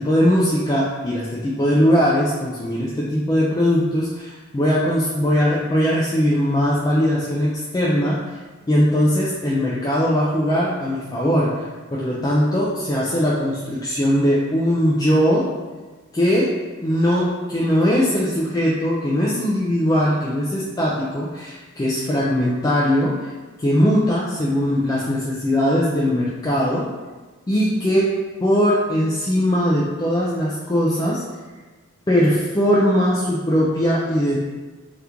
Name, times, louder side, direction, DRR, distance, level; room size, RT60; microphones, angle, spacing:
voice 1, 0.0-8.2 8.7-11.6 11.9-15.5 16.1-16.5 16.8-23.3 23.6-26.9 27.5-28.1 28.4-31.2 32.1-34.4, equal, 20° left, -6 dB, 0.3 m, -20 dB
2.9 x 2.4 x 3.5 m, 1.3 s
head